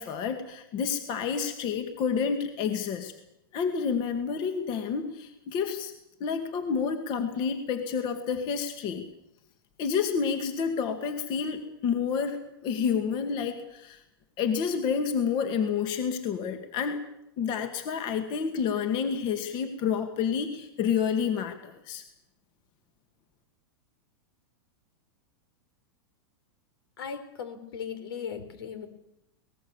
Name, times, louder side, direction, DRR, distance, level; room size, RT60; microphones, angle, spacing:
voice 1, 0.0-3.1 3.5-5.9 6.2-9.1 9.8-14.0 14.4-17.0 17.4-22.0, left 6 dB, 40° left, 7 dB, 2.2 m, -29 dB
voice 2, 27.0-28.9, left 7 dB, 80° left, 10 dB, 4.3 m, -37 dB
24.0 x 19.5 x 7.3 m, 0.85 s
supercardioid pair, 140°, 12 cm